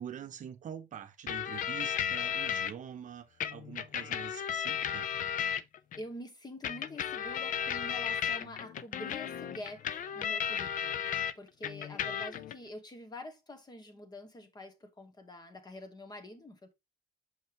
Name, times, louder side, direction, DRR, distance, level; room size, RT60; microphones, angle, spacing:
voice 1, 0.0-5.0, right 8 dB, 50° right, 0.8 m, -45 dB
sound 1, 1.3-2.7 3.4-6.0 6.6-11.3 11.6-12.5, left 9 dB, 50° left, 0.5 m, -34 dB
voice 2, 6.0-10.9 11.3-16.7, left 1 dB, 25° left, 1.3 m, -46 dB
6.5 x 5.4 x 2.9 m
cardioid pair, 110°, 17 cm